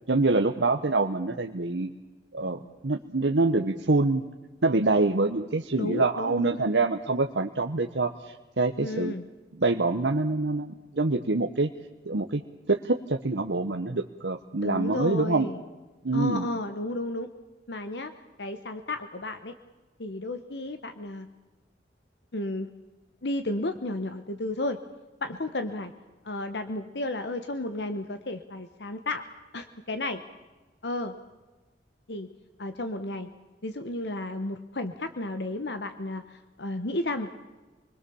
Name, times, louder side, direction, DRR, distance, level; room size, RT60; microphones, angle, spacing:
voice 1, 0.1-1.9 2.3-4.2 4.6-9.1 9.5-11.7 12.0-12.4 12.7-15.5 16.0-16.5, right 3 dB, 85° right, 4 dB, 1.1 m, -25 dB
voice 2, 5.8-6.7 8.8-9.2 14.6-15.6 16.1-17.3 17.7-18.1 18.4-19.5 20.0-21.3 22.3-22.7 23.2-24.8 25.2-25.9 26.2-29.2 29.5-30.2 30.8-31.1 32.1-32.3 32.6-33.3 33.6-37.4, left 2 dB, 70° left, 8 dB, 1.2 m, -33 dB
27.5 x 21.0 x 7.1 m, 1.2 s
head